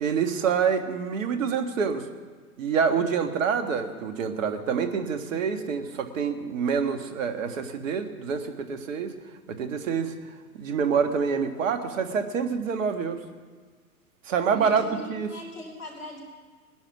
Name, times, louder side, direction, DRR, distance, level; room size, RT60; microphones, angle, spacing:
voice 1, 0.0-2.1 2.6-9.1 9.5-10.1 10.6-13.2 14.3-15.3, right 6 dB, 60° right, 7 dB, 1.7 m, -26 dB
voice 2, 14.5-16.2, left 1 dB, 80° left, 1 dB, 4.4 m, -40 dB
20.5 x 10.5 x 6.1 m, 1.5 s
figure-of-eight pair, 110°, 44 cm